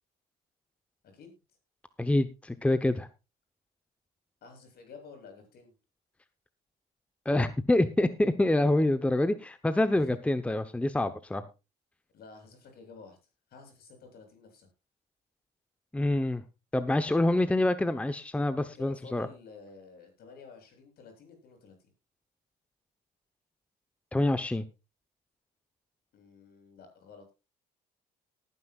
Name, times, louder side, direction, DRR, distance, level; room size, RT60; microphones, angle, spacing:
voice 1, 2.0-3.1 7.3-11.4 15.9-16.4 16.7-19.3 24.1-24.6, left 1 dB, 5° left, 11 dB, 0.9 m, -26 dB
voice 2, 4.4-5.7 9.9-10.1 12.1-13.2 13.5-14.7 18.7-21.7 26.1-27.3, left 4 dB, 65° left, 5 dB, 7.9 m, -51 dB
19.5 x 9.8 x 2.4 m, 0.28 s
cardioid pair, 110°, 17 cm